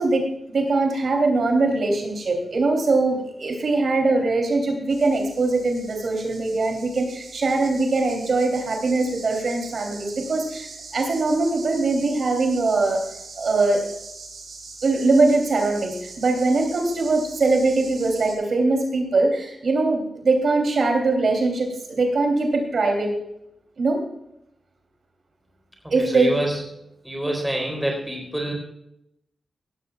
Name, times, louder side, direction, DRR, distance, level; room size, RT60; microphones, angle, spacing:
voice 1, 0.0-13.0 13.4-13.8 14.8-23.1 23.8-24.0 25.9-26.3, right 3 dB, 55° right, 2 dB, 3.1 m, -22 dB
sound 1, 4.9-18.3, right 4 dB, 90° right, 4.3 m, -42 dB
voice 2, 25.8-26.6 27.0-28.5, right 1 dB, 5° right, 0 dB, 3.9 m, -27 dB
18.0 x 14.0 x 2.4 m, 0.79 s
wide cardioid pair, 155°, 0 cm